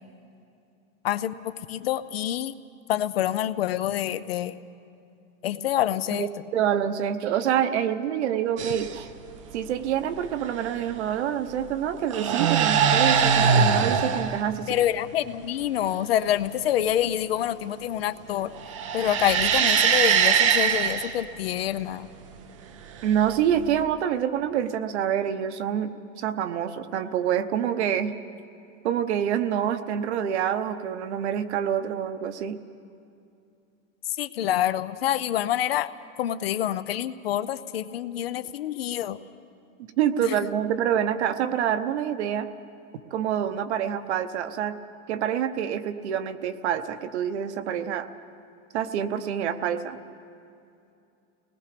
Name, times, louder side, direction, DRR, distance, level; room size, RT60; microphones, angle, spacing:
voice 1, 1.0-2.5 2.9-4.6 5.4-6.3 14.7-18.5 18.9-22.1 34.2-35.9 36.2-39.2 40.3-40.4, left 11 dB, 45° left, 14 dB, 0.5 m, -27 dB
voice 2, 6.1-9.1 9.5-14.8 23.0-28.1 28.8-32.6 40.0-42.5 43.1-44.8 45.1-48.1 48.7-50.0, right 9 dB, 55° right, 10 dB, 1.0 m, -26 dB
sound 1, 8.6-9.0 10.6-10.9 12.0-14.4 18.6-21.2 23.1-23.8, right 7 dB, 25° right, 0.4 m, -22 dB
29.5 x 19.5 x 5.1 m, 2.6 s
supercardioid pair, 180°, 41 cm